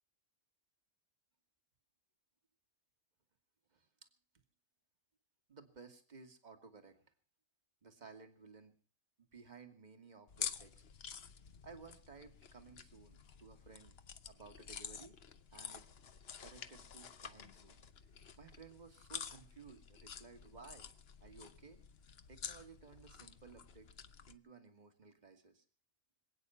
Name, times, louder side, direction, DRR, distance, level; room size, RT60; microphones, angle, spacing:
voice 1, 5.5-7.0 7.8-8.8 9.3-10.8 11.6-14.0 14.2-15.2 15.5-15.9 16.4-17.8 18.4-20.9 21.2-21.8 22.3-23.9 24.3-25.6, right 4 dB, 35° right, 7 dB, 2.0 m, -57 dB
sound 1, 10.3-24.4, left 7 dB, 55° left, 1.1 m, -49 dB
26.5 x 9.1 x 5.6 m, 0.39 s
omnidirectional pair, 1.3 m